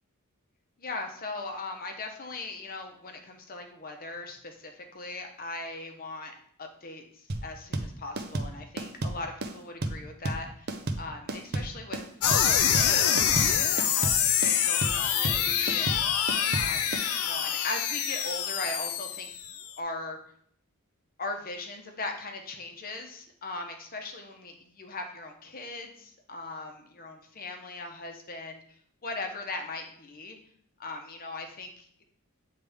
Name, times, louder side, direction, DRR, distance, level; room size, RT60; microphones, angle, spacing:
voice 1, 0.8-12.0 12.4-16.0 16.5-19.3 19.8-20.2 21.2-28.6 29.0-30.4 30.8-31.9, left 2 dB, 40° left, 4 dB, 0.9 m, -39 dB
sound 1, 7.3-17.1, right 2 dB, 45° right, 0.6 m, -32 dB
sound 2, 12.2-19.7, left 9 dB, 70° left, 0.5 m, -26 dB
8.4 x 3.3 x 3.5 m, 0.62 s
head